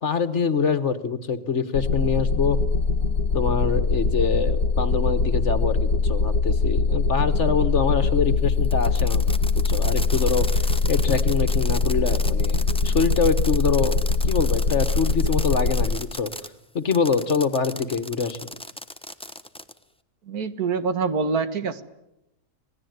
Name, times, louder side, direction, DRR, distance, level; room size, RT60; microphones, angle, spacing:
voice 1, 0.0-2.6 3.3-16.3 16.7-18.5, left 5 dB, 50° left, 11 dB, 1.6 m, -25 dB
sound 1, 1.8-16.0, left 4 dB, 70° left, 1.6 m, -22 dB
Fireworks, 8.6-16.5 16.9-19.8, left 1 dB, 5° left, 0.9 m, -37 dB
voice 2, 20.3-21.8, right 5 dB, 70° right, 11 dB, 2.0 m, -25 dB
26.5 x 19.0 x 9.5 m, 0.86 s
omnidirectional pair, 1.6 m